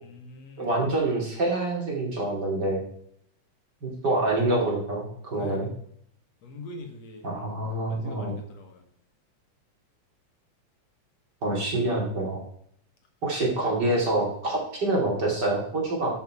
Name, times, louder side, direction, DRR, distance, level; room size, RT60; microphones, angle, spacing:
voice 1, 0.0-0.7 5.3-5.7 6.4-7.3 7.9-8.8, left 3 dB, 65° left, 3 dB, 2.5 m, -43 dB
voice 2, 0.6-2.8 3.8-5.7 7.2-8.3 11.4-12.4 13.2-16.1, right 2 dB, 35° right, -2 dB, 2.9 m, -26 dB
13.0 x 5.9 x 4.7 m, 0.68 s
omnidirectional pair, 3.3 m